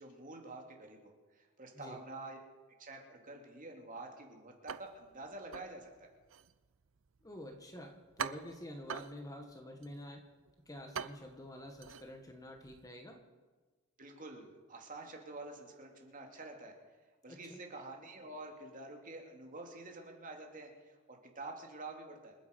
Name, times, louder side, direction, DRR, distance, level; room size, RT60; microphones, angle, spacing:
voice 1, 0.0-2.4 2.8-6.1 14.0-16.7 17.2-22.4, right 2 dB, 40° right, 2 dB, 2.7 m, -48 dB
sound 1, 4.7-12.9, right 7 dB, 65° right, 0.6 m, -46 dB
voice 2, 7.2-10.2 10.7-13.2 17.3-17.6, left 1 dB, 15° left, 4 dB, 1.5 m, -48 dB
27.5 x 9.5 x 5.3 m, 1.3 s
head